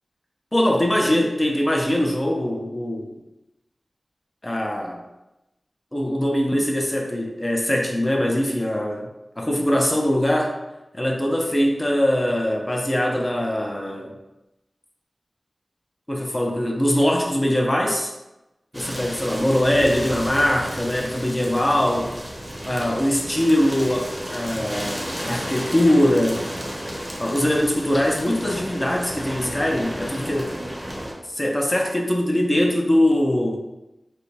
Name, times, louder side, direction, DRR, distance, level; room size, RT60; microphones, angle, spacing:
voice 1, 0.5-3.2 4.4-5.0 5.9-9.1 9.4-10.5 10.9-14.1 16.1-18.1 18.7-22.1 22.6-26.4 27.2-30.6 31.3-33.6, left 1 dB, 20° left, 1 dB, 0.6 m, -22 dB
sound 1, 18.7-31.1, equal, 20° right, 0.7 m, -33 dB
5.0 x 2.1 x 2.8 m, 0.96 s
wide cardioid pair, 75°, 0 cm